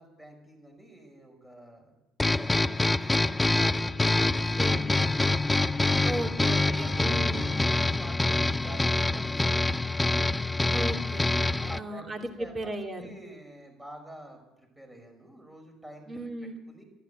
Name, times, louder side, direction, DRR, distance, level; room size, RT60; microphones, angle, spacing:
voice 1, 0.0-1.9 2.6-4.7 7.6-9.8 11.6-16.3 16.7-16.8, right 1 dB, 10° right, 3 dB, 6.0 m, -48 dB
sound 1, 2.2-11.8, left 2 dB, 15° left, 0.5 m, -25 dB
voice 2, 4.2-4.9 6.0-7.5 10.7-13.0 16.1-16.6, right 1 dB, 30° right, 4 dB, 2.9 m, -36 dB
12.5 x 11.5 x 9.4 m, 0.99 s
hypercardioid pair, 60°, 0 cm